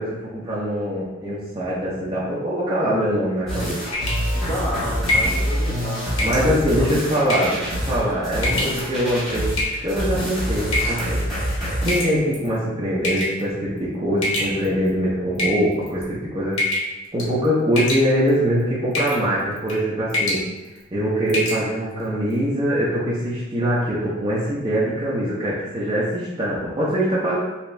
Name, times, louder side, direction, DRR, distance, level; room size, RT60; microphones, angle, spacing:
voice 1, 0.0-3.8 6.2-9.5 9.8-11.2 11.8-16.6 17.1-20.4 20.9-27.4, equal, 20° right, -8 dB, 0.5 m, -23 dB
sound 1, 3.5-12.0, equal, ahead, 1.3 m, -26 dB
sound 2, 3.9-4.3 5.1-5.4 6.2-6.5 7.3-7.6 8.4-8.8 9.6-10.0 10.7-11.1 11.9-12.5 13.0-13.4 14.2-14.9 15.4-16.0 16.6-16.9 17.2-17.5 17.8-18.3 18.9-19.2 19.6-19.8 20.1-20.4 20.8-20.9 21.3-21.6, left 1 dB, 65° left, 0.9 m, -24 dB
voice 2, 4.3-7.2, equal, 20° left, -8 dB, 1.0 m, -31 dB
3.3 x 2.8 x 3.1 m, 1.1 s
head